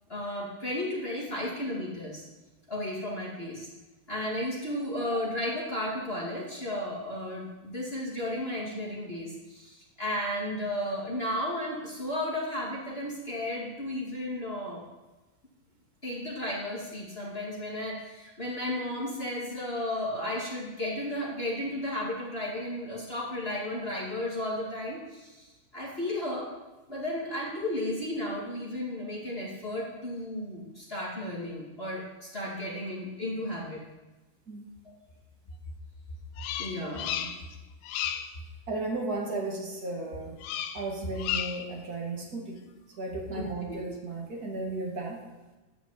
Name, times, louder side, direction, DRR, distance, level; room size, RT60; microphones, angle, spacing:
voice 1, 0.1-2.2 2.7-3.7 4.1-14.8 16.0-25.4 25.7-26.5 26.9-33.8 34.8-34.9 36.6-37.3 43.3-43.8, left 1 dB, 25° left, -5 dB, 1.3 m, -34 dB
Bird vocalization bird call bird song, 36.4-37.6 37.8-38.4 40.4-40.9 41.2-41.7, left 10 dB, 85° left, 2.8 m, -33 dB
voice 2, 38.7-40.4 40.7-42.6 43.0-45.2, right 2 dB, 50° right, -1 dB, 1.1 m, -34 dB
12.5 x 6.2 x 8.1 m, 1.2 s
omnidirectional pair, 4.9 m